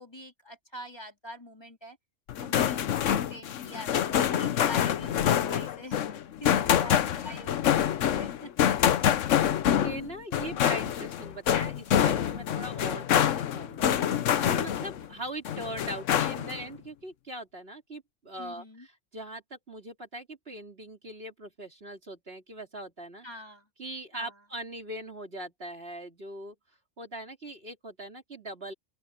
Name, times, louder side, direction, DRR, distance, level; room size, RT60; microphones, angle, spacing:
voice 1, 0.0-2.0 2.4-6.1 6.4-8.9 18.4-18.9 23.2-23.7 24.1-24.3, left 1 dB, 20° left, 3.7 m, -44 dB
sound 1, 2.3-15.1 15.4-16.6, left 10 dB, 85° left, 1.1 m, -26 dB
voice 2, 9.8-23.4 23.8-26.5 27.0-28.7, right 1 dB, 55° right, 3.4 m, -41 dB
open air
omnidirectional pair, 1.3 m